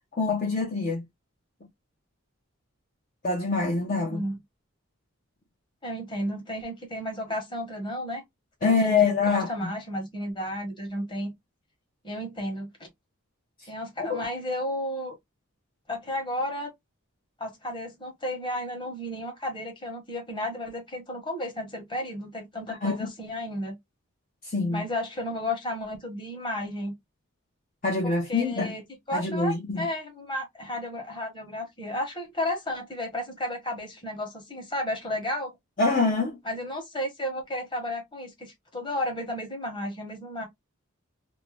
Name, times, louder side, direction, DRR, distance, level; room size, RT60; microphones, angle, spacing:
voice 1, 0.2-1.0 3.2-4.2 8.6-9.7 14.1-14.2 22.7-23.1 24.4-24.8 27.8-28.7 29.1-29.9 35.8-36.4, left 4 dB, 40° left, 0.6 m, -25 dB
voice 2, 5.8-8.2 8.6-11.3 12.0-12.9 13.7-15.1 15.9-16.7 17.4-23.8 24.7-27.0 28.0-28.8 29.1-35.5 36.4-40.5, left 1 dB, 20° left, 1.0 m, -33 dB
2.6 x 2.2 x 3.0 m
head